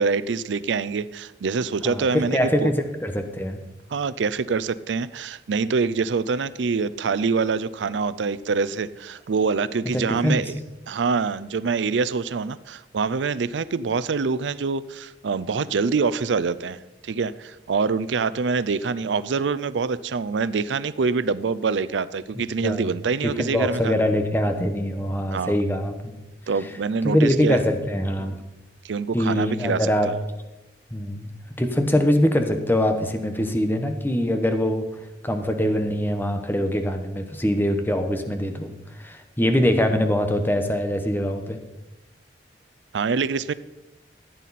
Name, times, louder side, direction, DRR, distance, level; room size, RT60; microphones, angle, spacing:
voice 1, 0.0-2.7 3.9-10.6 10.9-24.1 25.3-25.6 26.5-27.6 28.8-29.9 42.9-43.5, right 5 dB, 85° right, 16 dB, 0.5 m, -25 dB
voice 2, 1.8-3.6 9.9-10.4 22.6-22.9 23.2-26.1 27.0-28.4 29.1-30.1 30.9-31.3 31.6-34.9 35.2-38.7 39.0-41.6, left 1 dB, 10° left, 6 dB, 1.0 m, -23 dB
15.0 x 9.2 x 4.2 m, 1.0 s
head